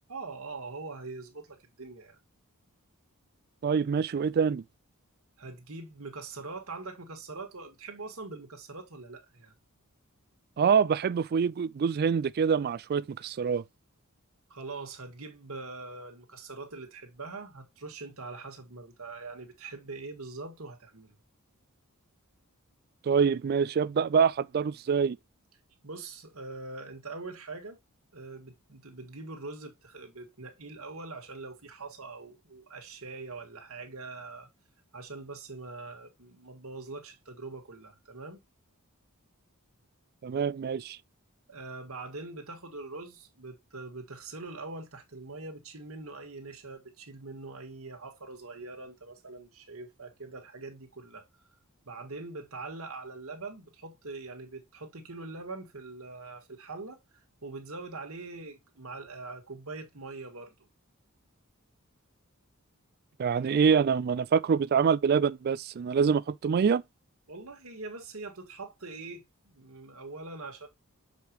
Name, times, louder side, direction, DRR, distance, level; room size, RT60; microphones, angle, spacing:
voice 1, 0.1-2.2 5.4-9.5 14.5-21.2 25.8-27.8 28.1-34.5 34.9-38.4 41.5-51.3 51.9-60.5 67.3-70.7, right 3 dB, 70° right, 1.8 m, -43 dB
voice 2, 3.6-4.6 10.6-13.6 23.1-25.2 40.2-41.0 63.2-66.8, right 6 dB, 45° right, 0.3 m, -25 dB
6.6 x 5.0 x 2.9 m
head